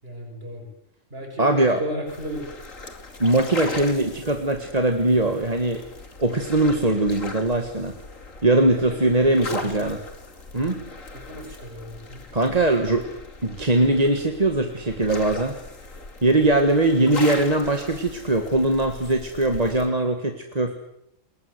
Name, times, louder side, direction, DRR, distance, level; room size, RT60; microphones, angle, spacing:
voice 1, 0.0-0.7 1.1-2.5 8.5-9.7 11.1-12.3, equal, 45° right, 1 dB, 6.7 m, -35 dB
voice 2, 1.4-1.8 3.2-5.8 6.2-7.9 8.4-10.0 10.5-10.8 12.3-15.6 16.2-20.7, right 2 dB, 30° right, 5 dB, 1.8 m, -21 dB
sound 1, 2.1-19.9, left 3 dB, 80° left, 3.1 m, -38 dB
28.5 x 21.0 x 8.1 m, 0.81 s
omnidirectional pair, 1.3 m